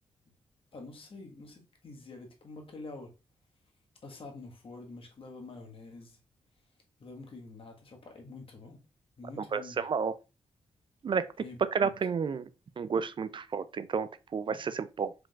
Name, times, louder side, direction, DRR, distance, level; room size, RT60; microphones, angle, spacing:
voice 1, 0.7-3.1 4.0-6.2 7.0-8.8 9.2-9.9 11.4-11.9, left 3 dB, 55° left, 1.4 m, -47 dB
voice 2, 9.4-10.2 11.0-11.3 11.7-12.5 12.8-15.1, right 6 dB, 45° right, 0.4 m, -31 dB
4.8 x 3.7 x 2.3 m
cardioid pair, 65°, 11 cm